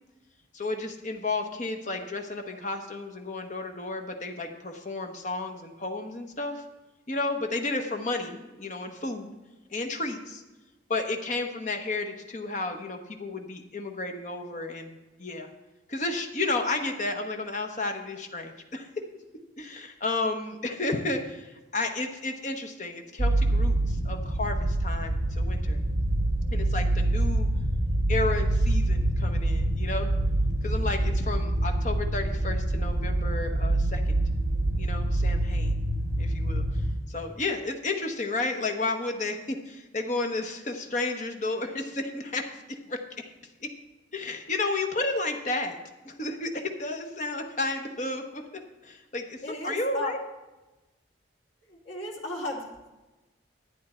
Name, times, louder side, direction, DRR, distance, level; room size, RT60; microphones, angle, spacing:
voice 1, 0.5-6.6 7.1-9.3 9.7-10.4 10.9-15.5 15.9-18.9 19.6-25.8 26.5-27.5 28.1-30.1 30.6-34.2 34.8-35.8 36.2-36.6 37.1-42.5 42.9-43.3 43.6-43.7 44.1-45.8 46.0-48.4 48.8-50.2, left 2 dB, 40° left, 5 dB, 1.0 m, -32 dB
sound 1, 23.2-36.9, right 1 dB, 60° right, 1.4 m, -26 dB
voice 2, 49.4-50.1 51.7-52.9, left 1 dB, 70° left, -2 dB, 2.5 m, -35 dB
11.5 x 9.2 x 4.3 m, 1.1 s
head